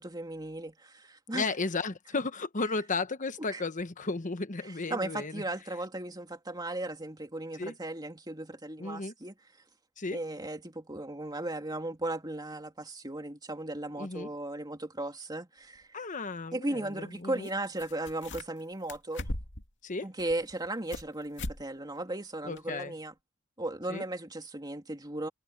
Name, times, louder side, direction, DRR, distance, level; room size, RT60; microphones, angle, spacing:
voice 1, 0.0-1.5 3.5-3.6 4.9-9.3 10.1-15.9 16.5-19.3 20.0-23.1 23.6-25.3, right 1 dB, 20° right, 3.1 m, -36 dB
voice 2, 1.3-5.4 7.6-7.7 8.8-9.1 10.0-10.2 14.0-14.3 15.9-17.5 19.8-20.1 22.4-22.9 23.9-24.0, left 3 dB, 35° left, 1.1 m, -34 dB
sound 1, 15.7-15.8 17.4-17.5 17.8-18.6 18.9-19.7 20.2-21.1 21.4-21.6 21.9-22.0 22.6-22.7, left 1 dB, 60° left, 2.7 m, -38 dB
head